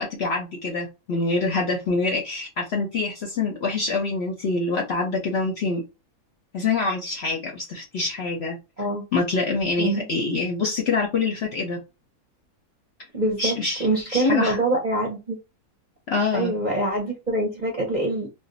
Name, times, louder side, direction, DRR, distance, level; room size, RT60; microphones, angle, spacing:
voice 1, 0.0-5.8 6.5-8.6 9.1-11.8 13.4-14.6 16.1-16.5, left 3 dB, 55° left, 0.7 m, -25 dB
voice 2, 13.1-15.4 16.3-18.3, right 1 dB, 40° right, 0.7 m, -24 dB
2.5 x 2.1 x 3.7 m
omnidirectional pair, 1.7 m